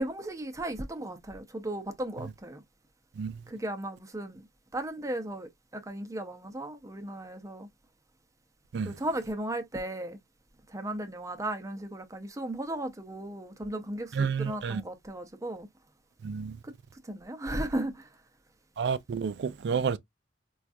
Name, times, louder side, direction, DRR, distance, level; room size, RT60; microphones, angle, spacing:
voice 1, 0.0-2.6 3.5-4.4 4.7-7.7 8.8-10.2 10.7-15.7 16.6-16.7 17.0-18.1, right 1 dB, 20° right, 0.6 m, -36 dB
voice 2, 14.2-14.8 16.2-16.5 18.8-20.0, right 6 dB, 65° right, 0.3 m, -30 dB
4.4 x 2.3 x 2.5 m
head